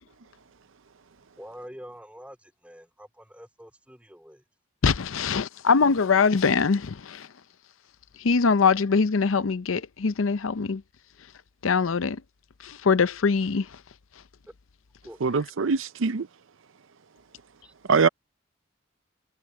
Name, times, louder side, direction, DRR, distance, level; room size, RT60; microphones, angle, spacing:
voice 1, 1.4-4.4 15.0-15.2 17.6-17.7, equal, 5° right, 3.9 m, -46 dB
voice 2, 4.8-7.3 8.2-10.8 11.6-12.2 12.6-13.8, left 5 dB, 90° left, 0.6 m, -23 dB
voice 3, 15.2-16.3 17.9-18.1, right 5 dB, 85° right, 0.6 m, -22 dB
head